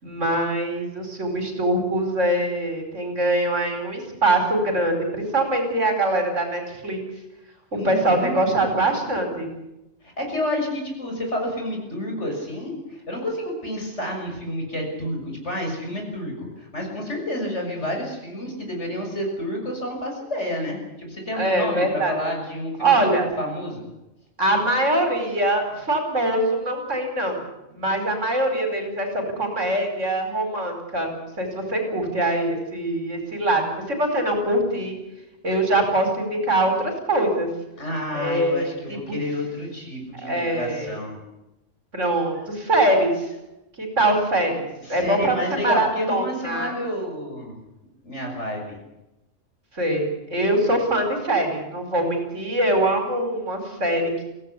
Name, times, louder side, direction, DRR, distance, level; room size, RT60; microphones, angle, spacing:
voice 1, 0.0-7.0 7.8-9.5 21.4-22.1 22.8-23.3 24.4-35.0 35.4-37.5 38.1-39.1 40.2-40.9 41.9-43.3 43.8-46.8 49.7-54.1, right 1 dB, 75° right, 4 dB, 5.2 m, -23 dB
voice 2, 7.7-8.6 10.0-23.8 37.8-41.2 44.8-47.5 48.0-48.8, left 1 dB, 65° left, 1 dB, 7.1 m, -30 dB
23.5 x 17.0 x 8.5 m, 0.91 s
omnidirectional pair, 1.3 m